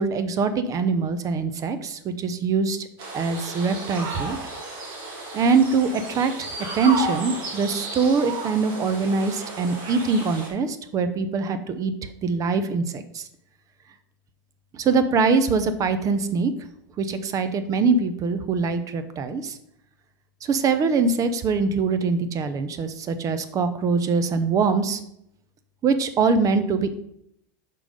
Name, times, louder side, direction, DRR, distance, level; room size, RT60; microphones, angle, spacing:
voice 1, 0.0-2.9 3.1-4.4 5.3-6.5 6.7-11.9 12.2-13.2 14.7-16.5 17.0-19.6 20.4-25.0 25.8-27.0, right 4 dB, 35° right, 10 dB, 0.7 m, -23 dB
sound 1, 3.0-10.5, right 2 dB, 50° right, 2.1 m, -33 dB
6.2 x 3.8 x 5.2 m, 0.75 s
hypercardioid pair, 105°, 10 cm